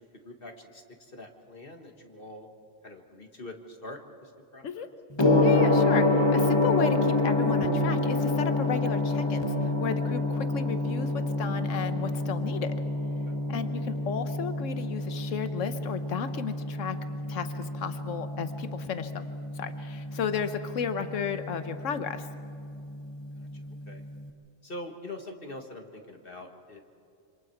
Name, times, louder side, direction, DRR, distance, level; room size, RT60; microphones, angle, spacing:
voice 1, 0.0-2.5 2.8-4.9 23.4-23.5 23.9-24.0 24.6-26.8, left 1 dB, 45° left, 3 dB, 1.9 m, -44 dB
Gong, 5.2-24.2, left 2 dB, 20° left, 1.5 m, -28 dB
voice 2, 5.4-6.1 6.3-12.7 13.5-17.0 17.3-19.3 19.6-22.3, left 7 dB, 85° left, 9 dB, 1.3 m, -33 dB
26.5 x 26.5 x 4.6 m, 2.6 s
omnidirectional pair, 1.3 m